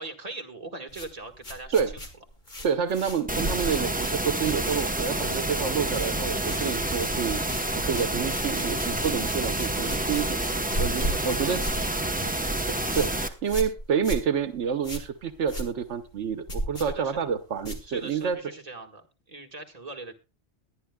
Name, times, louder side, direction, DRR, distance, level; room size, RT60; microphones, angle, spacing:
voice 1, 0.0-2.0 10.4-12.5 16.8-17.3 17.8-20.1, right 3 dB, 35° right, 3 dB, 1.7 m, -41 dB
sound 1, 0.9-5.2 5.5-6.1 6.4-18.3, equal, 40° left, 2.1 m, -36 dB
voice 2, 2.6-11.6 12.7-18.4, right 7 dB, 80° right, 10 dB, 1.2 m, -28 dB
sound 2, 3.3-13.3, right 1 dB, 10° right, 0.8 m, -28 dB
21.5 x 10.5 x 2.2 m, 0.28 s
omnidirectional pair, 1.2 m